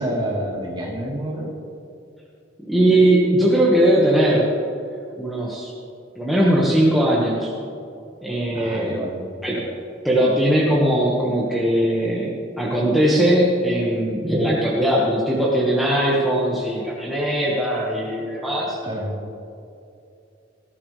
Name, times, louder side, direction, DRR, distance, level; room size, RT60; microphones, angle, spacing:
voice 1, 0.0-1.5 8.5-9.2 18.8-19.2, right 1 dB, 25° right, -5 dB, 3.8 m, -28 dB
voice 2, 2.6-4.5 5.2-5.7 6.2-7.5 8.2-8.9 9.4-9.7 10.0-18.8, right 1 dB, ahead, -6 dB, 1.8 m, -19 dB
20.0 x 15.0 x 3.4 m, 2.6 s
head